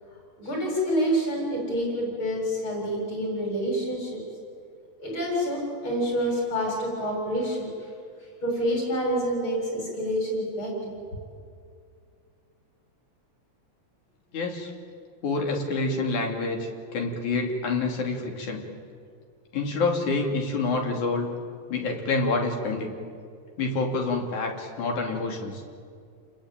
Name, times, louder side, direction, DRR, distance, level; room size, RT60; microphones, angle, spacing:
voice 1, 0.4-4.2 5.0-7.9 8.4-11.0, equal, 40° left, -1 dB, 7.9 m, -27 dB
voice 2, 14.3-14.7 15.2-16.6 16.9-18.6 19.5-21.3 21.7-22.9 23.6-25.6, left 3 dB, 75° left, 2 dB, 4.2 m, -27 dB
30.0 x 21.0 x 9.0 m, 2.3 s
omnidirectional pair, 3.5 m